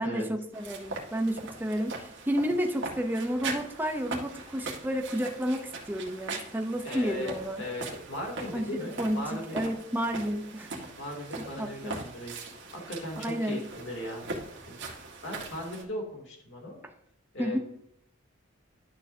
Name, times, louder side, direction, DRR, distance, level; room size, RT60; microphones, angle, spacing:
voice 1, 0.0-7.6 8.5-10.7 11.6-12.0 13.2-13.6 17.4-17.6, equal, 10° right, 4 dB, 0.7 m, -31 dB
sound 1, 0.5-15.8, right 3 dB, 60° right, 1.7 m, -41 dB
voice 2, 6.8-9.6 11.0-12.3 12.7-14.3 14.7-16.8 17.3-17.6, left 1 dB, 60° left, 1 dB, 2.8 m, -38 dB
11.5 x 6.8 x 2.8 m, 0.72 s
head